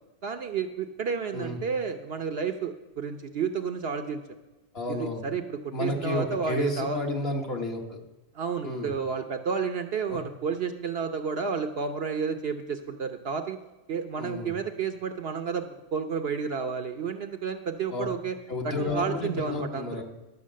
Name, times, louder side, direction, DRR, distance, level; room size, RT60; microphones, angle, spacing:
voice 1, 0.2-4.2 4.9-7.0 8.3-13.6 13.9-18.4 18.6-19.9, right 6 dB, 60° right, 7 dB, 0.8 m, -31 dB
voice 2, 4.7-5.2 5.7-8.0 8.6-8.9 10.1-10.2 14.2-14.5 17.9-18.1 18.5-20.0, left 2 dB, 50° left, 1 dB, 1.5 m, -31 dB
12.0 x 5.9 x 7.4 m, 1.1 s
omnidirectional pair, 1.3 m